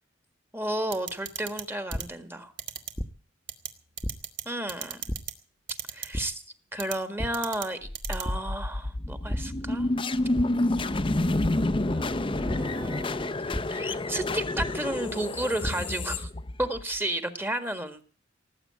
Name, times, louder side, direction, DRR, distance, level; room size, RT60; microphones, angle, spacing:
voice 1, 0.5-2.5 4.4-5.0 5.9-6.4 6.7-9.9 11.8-13.3 13.7-16.3 16.6-18.0, right 1 dB, 10° right, 9 dB, 1.6 m, -32 dB
sound 1, 0.9-1.6 1.9-2.0 2.6-2.9 3.5-3.7 4.0-4.4 4.7-5.3 5.7-6.1 6.8-7.0 7.3-7.7 7.9-8.2, right 10 dB, 60° right, 1.7 m, -34 dB
sound 2, 1.9-2.0 3.0-3.1 4.0-4.1 5.1-5.2 6.1-6.2 7.2-7.3 7.7-7.9 8.2-8.3 9.3-9.4 10.3-10.5 11.4-11.5 12.5-12.6 13.5-13.6 14.6-14.7 15.4-15.7, equal, 5° left, 1.1 m, -30 dB
sound 3, 7.8-17.0, left 2 dB, 25° left, 0.7 m, -29 dB
18.5 x 8.4 x 8.7 m, 0.41 s
head